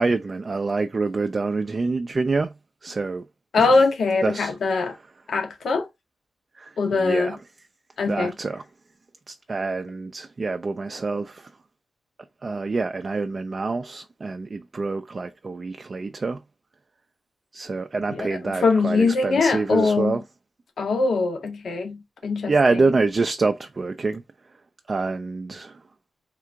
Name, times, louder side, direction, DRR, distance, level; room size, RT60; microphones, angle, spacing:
voice 1, 0.0-2.5 2.8-3.2 3.6-3.8 4.2-4.9 6.6-7.4 8.1-8.6 9.3-11.5 12.4-16.4 17.5-20.2 22.5-24.2 24.9-25.7, right 3 dB, 30° right, 0.3 m, -26 dB
voice 2, 3.5-4.9 5.3-5.9 6.8-7.4 8.0-8.3 18.1-20.2 20.8-22.8, left 4 dB, 70° left, 0.8 m, -22 dB
3.7 x 2.4 x 4.4 m
wide cardioid pair, 175°, 0 cm